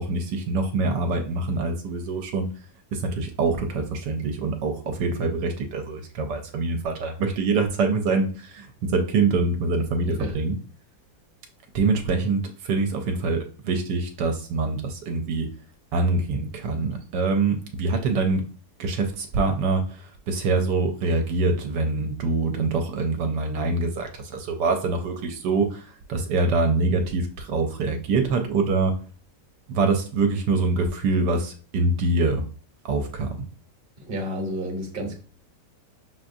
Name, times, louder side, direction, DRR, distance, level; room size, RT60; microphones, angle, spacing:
voice 1, 0.0-2.5 2.9-10.6 11.7-15.5 15.9-18.4 18.8-28.9 29.7-32.4 32.8-33.5, right 3 dB, 80° right, 4 dB, 1.2 m, -25 dB
voice 2, 10.0-10.4 34.0-35.2, equal, 40° right, 2 dB, 1.0 m, -31 dB
5.9 x 2.5 x 2.6 m, 0.39 s
omnidirectional pair, 1.9 m